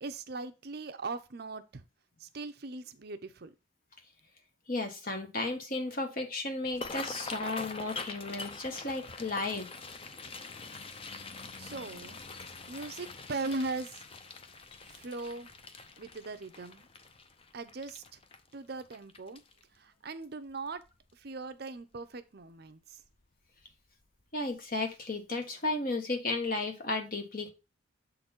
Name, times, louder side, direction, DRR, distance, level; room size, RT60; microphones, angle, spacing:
voice 1, 0.0-1.8 2.2-3.5 11.6-12.2 12.7-14.0 14.9-15.5 16.0-16.9 17.5-18.0 18.5-19.4 19.8-20.8 21.2-23.0, right 3 dB, 50° right, 9 dB, 0.6 m, -39 dB
voice 2, 4.7-9.7 24.3-27.5, left 2 dB, 45° left, 4 dB, 1.4 m, -34 dB
sound 1, 6.6-19.8 20.2-20.5 20.8-21.3 21.7-21.8 23.1-23.2 23.6-23.7 24.2-24.3, left 3 dB, 30° left, 0.6 m, -44 dB
7.3 x 4.0 x 4.3 m, 0.28 s
head